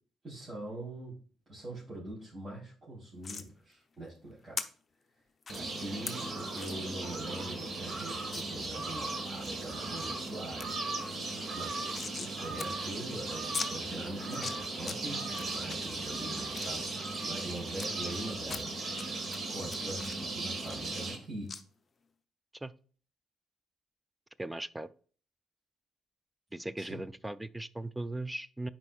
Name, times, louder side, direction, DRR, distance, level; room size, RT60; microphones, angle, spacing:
voice 1, 0.2-1.1 1.5-4.6 5.5-11.2 11.5-11.8 12.1-18.8 19.5-21.5 26.8-27.0, right 1 dB, 30° right, -8 dB, 3.4 m, -43 dB
sound 1, 3.2-3.5 4.6-4.7 5.4-5.6 6.1-6.2 6.6-6.8 7.2-7.3 7.5-7.6 8.3-8.4 8.9-9.5 9.9-10.3 10.6-10.7 11.0-12.3 12.6-12.7 13.0-13.1 13.5-13.7 14.2-15.0 15.3-15.8 16.2-17.9 18.4-19.0 19.3-21.2 21.5-21.6, left 5 dB, 35° left, 0.6 m, -40 dB
sound 2, 5.5-21.2, right 2 dB, 45° right, 1.4 m, -37 dB
voice 2, 24.4-24.9 26.5-28.7, right 1 dB, 10° right, 16 dB, 0.3 m, -38 dB
9.8 x 4.4 x 2.3 m, 0.42 s
cardioid pair, 90°, 0 cm